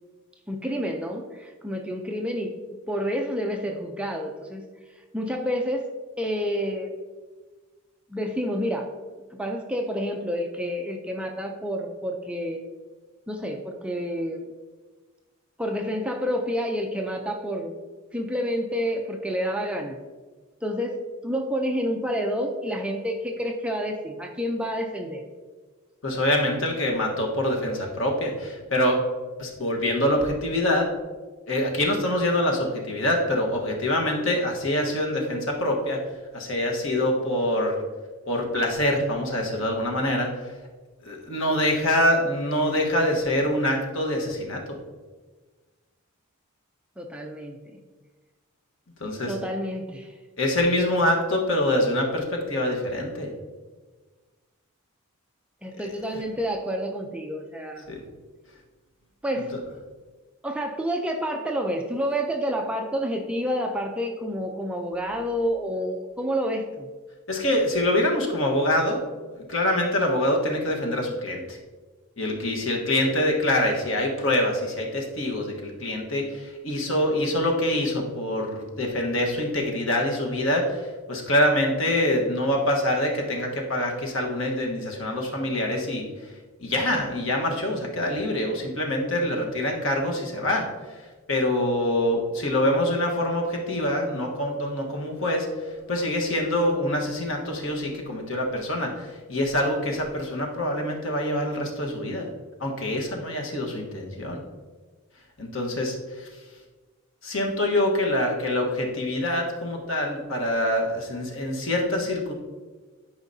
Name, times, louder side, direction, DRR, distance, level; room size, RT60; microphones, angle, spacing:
voice 1, 0.5-4.6 5.1-5.9 6.2-6.9 8.1-8.9 9.3-12.6 13.3-14.4 15.6-17.7 18.1-20.0 20.6-25.2 47.0-47.8 49.3-50.1 55.6-57.9 59.2-59.5 60.4-66.9, equal, 5° right, 1 dB, 0.5 m, -29 dB
voice 2, 26.0-29.0 29.4-30.9 31.5-36.0 36.3-37.8 38.3-40.3 41.0-44.6 49.0-49.4 50.4-53.3 56.1-56.2 57.9-58.0 59.4-59.6 67.3-69.0 69.3-71.6 72.2-86.3 86.6-102.3 102.6-104.4 105.4-106.3 107.2-112.3, left 1 dB, 65° left, 0 dB, 1.3 m, -25 dB
11.5 x 5.0 x 2.7 m, 1.3 s
head